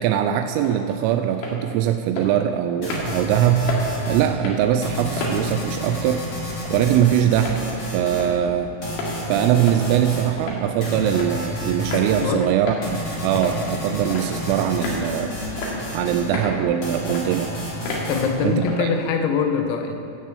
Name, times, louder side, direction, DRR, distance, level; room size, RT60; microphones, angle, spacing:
voice 1, 0.0-3.8 4.1-6.2 6.7-8.7 9.3-15.3 15.9-17.5 18.4-18.9, right 10 dB, 85° right, 7 dB, 3.1 m, -22 dB
sound 1, 0.6-0.8 1.3-1.6 2.2-2.3 2.9-3.1 3.7-3.9 4.3-4.6 5.2-5.4 5.9-6.1 6.7-6.8 7.4-7.6 8.2-8.4 8.9-9.1 9.7-9.9 10.4-10.6 11.1-11.3 11.9-12.1 12.7-12.8 13.4-13.6 14.1-14.4 14.8-15.0 15.6-15.8 16.3-16.6 17.1-17.2 17.9-18.1 18.6-18.8, left 3 dB, 70° left, 4.3 m, -30 dB
sound 2, 2.8-4.3 4.8-8.3 8.8-10.3 10.8-12.3 12.8-16.3 16.8-18.3, left 1 dB, 35° left, 1.8 m, -30 dB
voice 2, 18.1-20.0, left 5 dB, 90° left, 5 dB, 3.7 m, -23 dB
16.5 x 6.4 x 8.4 m, 2.5 s
omnidirectional pair, 5.9 m